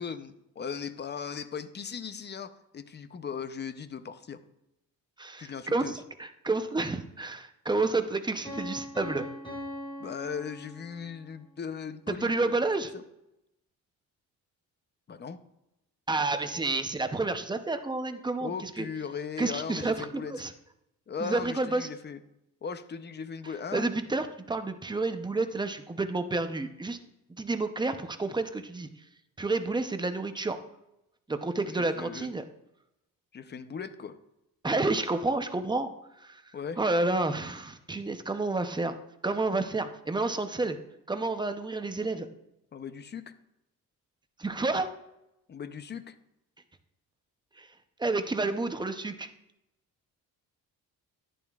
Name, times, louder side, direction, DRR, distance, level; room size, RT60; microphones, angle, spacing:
voice 1, 0.0-4.4 5.4-5.9 10.0-12.6 15.1-15.4 18.4-20.3 21.1-22.2 22.6-23.9 31.7-32.3 33.3-34.2 36.5-36.8 42.7-43.3 45.5-46.2, left 6 dB, 30° left, 11 dB, 0.6 m, -38 dB
voice 2, 5.2-5.9 6.2-9.3 12.1-12.9 16.1-18.9 19.4-20.5 21.2-21.9 23.7-27.0 27.4-28.9 29.4-30.6 31.3-32.4 34.6-35.9 36.2-36.4 36.8-40.8 41.1-42.3 44.4-44.9 47.6-47.7 48.0-49.3, right 3 dB, 15° right, 8 dB, 0.6 m, -30 dB
Piano, 8.4-11.2, equal, 15° left, 3.9 m, -40 dB
11.0 x 10.5 x 2.3 m, 0.87 s
cardioid pair, 135°, 35 cm